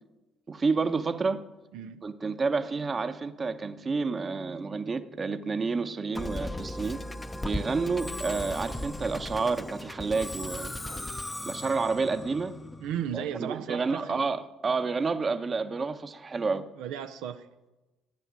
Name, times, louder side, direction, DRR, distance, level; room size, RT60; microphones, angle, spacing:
voice 1, 0.5-1.4 2.0-7.0 7.4-10.7 11.4-12.5 13.1-16.6, right 4 dB, 35° right, 10 dB, 0.9 m, -29 dB
Musical instrument, 6.1-13.5, left 1 dB, 10° left, 0.7 m, -37 dB
voice 2, 12.8-14.2 16.8-17.5, right 9 dB, 80° right, 7 dB, 0.6 m, -35 dB
14.0 x 9.2 x 7.3 m, 1.1 s
supercardioid pair, 75°, 0 cm